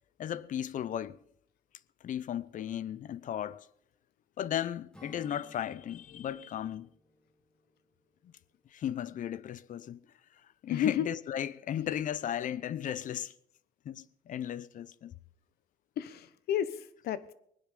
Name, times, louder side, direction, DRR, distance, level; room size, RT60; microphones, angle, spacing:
voice 1, 0.2-1.2 2.0-3.7 4.4-6.9 8.7-10.0 10.6-13.3 13.8-15.1, left 10 dB, 50° left, 0.7 m, -35 dB
Acoustic guitar / Strum, 4.9-8.6, equal, 5° left, 2.4 m, -59 dB
voice 2, 10.7-11.1 16.0-17.3, left 10 dB, 70° left, 1.1 m, -31 dB
20.0 x 10.0 x 6.8 m
cardioid pair, 110°, 17 cm